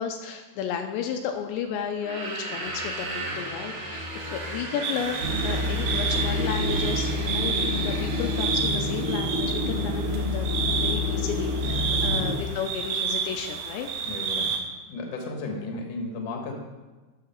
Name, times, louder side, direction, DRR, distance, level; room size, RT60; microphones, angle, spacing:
voice 1, 0.0-13.9 15.7-15.8, left 7 dB, 85° left, 4 dB, 2.8 m, -33 dB
sound 1, 1.9-9.2, right 1 dB, 50° right, 3.8 m, -36 dB
sound 2, 4.8-14.6, right 6 dB, 85° right, 1.8 m, -30 dB
sound 3, 5.2-12.4, left 2 dB, 25° right, 2.3 m, -28 dB
voice 2, 9.6-10.0 11.6-12.2 14.1-14.6 14.9-16.5, left 3 dB, 55° left, 2 dB, 2.5 m, -35 dB
12.5 x 7.3 x 4.5 m, 1.2 s
omnidirectional pair, 5.3 m